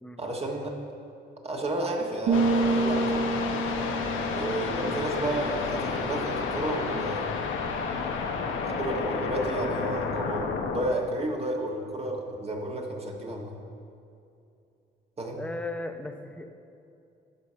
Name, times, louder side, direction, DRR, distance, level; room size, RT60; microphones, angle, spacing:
voice 1, 0.2-0.8 1.4-3.2 4.3-7.3 8.6-13.5 15.2-15.4, right 1 dB, 30° right, 0 dB, 1.4 m, -32 dB
sound 1, 2.3-10.8, left 5 dB, 85° left, 0.9 m, -31 dB
sound 2, 2.3-6.0, right 3 dB, 65° right, 0.6 m, -28 dB
voice 2, 15.4-16.5, left 2 dB, 5° left, 6 dB, 0.7 m, -36 dB
13.0 x 4.8 x 5.6 m, 2.6 s
cardioid pair, 90°, 20 cm